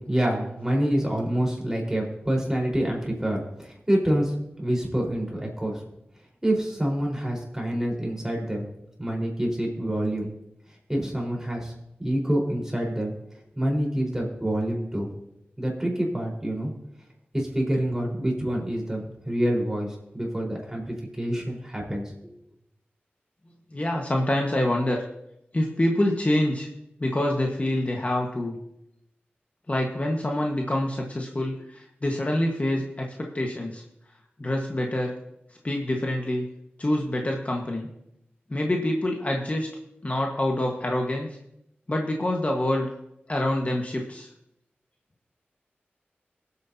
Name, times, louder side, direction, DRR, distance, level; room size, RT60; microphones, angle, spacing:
voice 1, 0.1-5.8 6.4-8.7 9.0-10.3 10.9-11.7 12.0-13.1 13.6-15.1 15.6-16.7 17.3-22.0, right 1 dB, 15° right, -2 dB, 4.3 m, -27 dB
voice 2, 23.7-25.0 25.5-26.7 27.0-28.6 29.7-33.8 34.4-35.1 35.6-36.4 36.8-37.9 38.5-39.7 40.0-41.3 41.9-42.9 43.3-44.3, left 1 dB, 35° left, 0 dB, 1.4 m, -26 dB
22.5 x 8.2 x 2.8 m, 0.81 s
cardioid pair, 50°, 4 cm